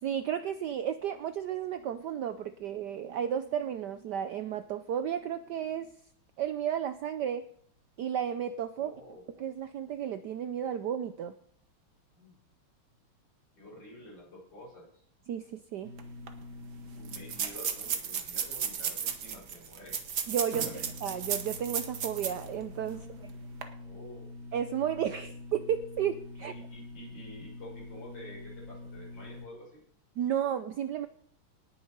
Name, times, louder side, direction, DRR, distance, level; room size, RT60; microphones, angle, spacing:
voice 1, 0.0-5.9 6.4-7.4 8.0-8.9 9.4-11.3 15.3-15.9 20.3-23.1 24.5-26.5 30.2-31.1, right 9 dB, 70° right, 11 dB, 1.0 m, -33 dB
voice 2, 8.7-9.2 12.1-12.4 13.6-14.9 16.9-20.0 20.5-20.9 22.9-23.3 23.8-24.4 26.5-29.8, left 1 dB, 55° left, -3 dB, 6.7 m, -49 dB
sound 1, 15.8-29.5, left 1 dB, 35° right, 1.3 m, -46 dB
sound 2, 16.0-16.1 16.3-16.4 17.0-22.5 22.9-23.0 23.5-23.6, right 7 dB, 55° right, 1.6 m, -34 dB
19.0 x 7.2 x 5.4 m, 0.64 s
omnidirectional pair, 2.4 m